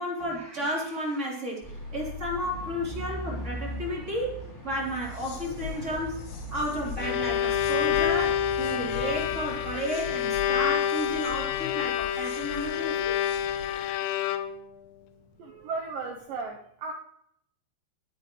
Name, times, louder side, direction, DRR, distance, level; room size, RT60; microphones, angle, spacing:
voice 1, 0.0-4.4 4.6-6.2 6.5-13.4, equal, 15° right, -4 dB, 3.6 m, -32 dB
sound 1, 1.6-9.8, equal, 5° left, 4.0 m, -40 dB
sound 2, 4.9-13.9, left 7 dB, 55° left, 2.0 m, -42 dB
Bowed string instrument, 6.7-14.8, left 10 dB, 85° left, 3.1 m, -28 dB
voice 2, 15.4-16.9, right 4 dB, 85° right, 2 dB, 1.9 m, -35 dB
23.5 x 9.3 x 3.2 m, 0.72 s
omnidirectional pair, 5.2 m